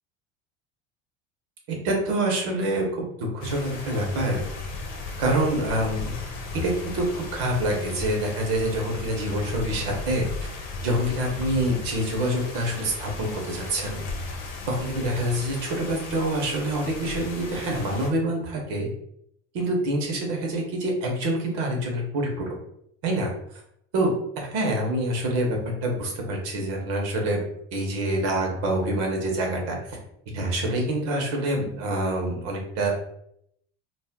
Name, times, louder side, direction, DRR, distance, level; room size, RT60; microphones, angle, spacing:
voice 1, 1.7-4.4 5.2-6.1 6.6-10.5 10.8-14.0 14.7-18.9 19.5-22.6 23.0-23.3 23.9-27.4 27.7-30.0 30.3-32.9, right 1 dB, 65° right, 0 dB, 1.0 m, -26 dB
sound 1, 3.4-18.1, left 3 dB, 60° left, 0.8 m, -36 dB
2.5 x 2.0 x 3.6 m, 0.74 s
hypercardioid pair, 75°, 36 cm